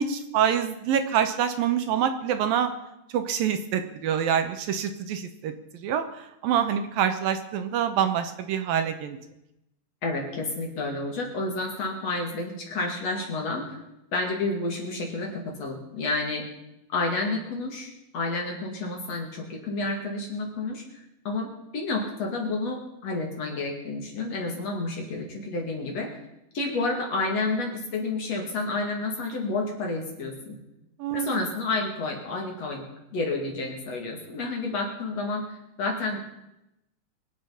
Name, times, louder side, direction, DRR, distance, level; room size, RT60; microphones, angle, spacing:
voice 1, 0.0-2.7 3.1-5.5 5.8-9.2 31.0-31.4, right 8 dB, 75° right, 8 dB, 2.6 m, -26 dB
voice 2, 10.0-13.8 14.1-16.5 16.9-20.8 21.2-26.2 26.5-30.6 31.1-32.9 33.1-36.3, left 3 dB, 50° left, 1 dB, 2.9 m, -30 dB
23.5 x 8.8 x 5.7 m, 0.87 s
omnidirectional pair, 4.4 m